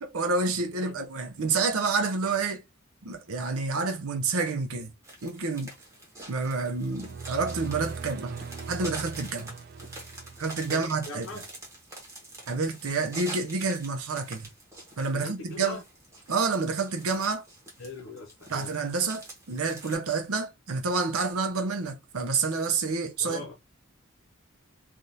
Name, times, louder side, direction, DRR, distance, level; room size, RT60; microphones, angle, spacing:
voice 1, 0.0-2.6 3.0-4.9 5.2-5.7 6.3-8.4 8.7-9.5 10.4-11.3 12.5-14.5 15.0-15.8 16.3-17.4 18.5-23.4, right 4 dB, 85° right, 0.7 m, -28 dB
sound 1, 5.0-20.0, right 1 dB, 15° right, 1.0 m, -46 dB
sound 2, 6.8-11.1, right 4 dB, 45° right, 0.3 m, -40 dB
voice 2, 10.7-11.4 15.1-15.8 17.8-18.7 23.2-23.5, left 3 dB, 70° left, 0.8 m, -41 dB
3.5 x 2.4 x 2.6 m
head